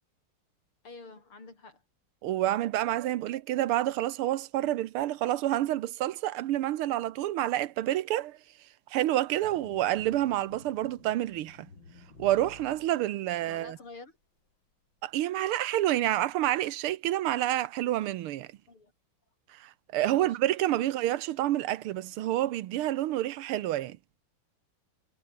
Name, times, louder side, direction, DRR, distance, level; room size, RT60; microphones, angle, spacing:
voice 1, 0.8-1.8 13.4-14.2 18.7-18.9 20.0-20.4 20.8-21.0, left 3 dB, 85° left, 6.5 m, -48 dB
voice 2, 2.2-8.4 8.9-11.7 12.2-13.8 15.0-18.5 19.5-24.0, right 14 dB, 85° right, 1.7 m, -28 dB
sound 1, 9.4-14.0, left 4 dB, 60° left, 4.8 m, -53 dB
omnidirectional pair, 2.3 m